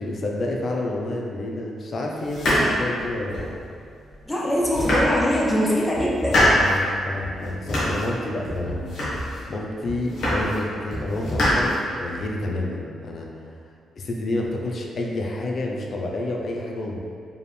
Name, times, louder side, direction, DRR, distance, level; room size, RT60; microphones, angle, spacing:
voice 1, 0.0-3.5 6.3-8.9 9.5-13.3 14.0-17.0, left 2 dB, 55° left, 0 dB, 0.6 m, -29 dB
sound 1, 2.3-3.6 4.1-4.2 4.6-5.6 5.9-6.8 7.2-8.1 8.4-9.5 9.8-10.6 10.9-12.2, equal, 75° left, 1.4 m, -24 dB
voice 2, 4.3-6.9, equal, 15° left, -4 dB, 0.9 m, -23 dB
4.8 x 2.5 x 3.3 m, 2.3 s
cardioid pair, 75°, 0 cm